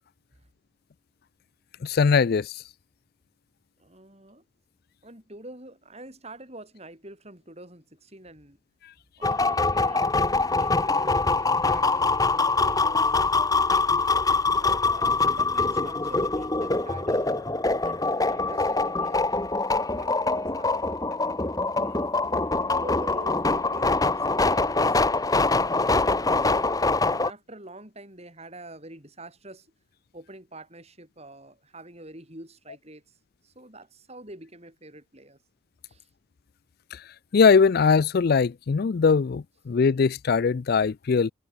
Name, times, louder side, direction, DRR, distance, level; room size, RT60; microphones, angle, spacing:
voice 1, 1.8-2.6 36.9-37.0 37.3-41.3, left 5 dB, 50° left, 0.4 m, -21 dB
voice 2, 3.8-4.4 5.0-8.6 9.2-14.0 14.6-15.1 15.3-17.5 17.8-19.4 19.9-21.6 22.3-25.0 25.9-26.7 27.1-29.7 30.1-33.2 33.4-35.4 35.9-36.1, right 1 dB, 30° right, 6.7 m, -45 dB
sound 1, 9.2-27.3, left 3 dB, 20° left, 1.0 m, -24 dB
head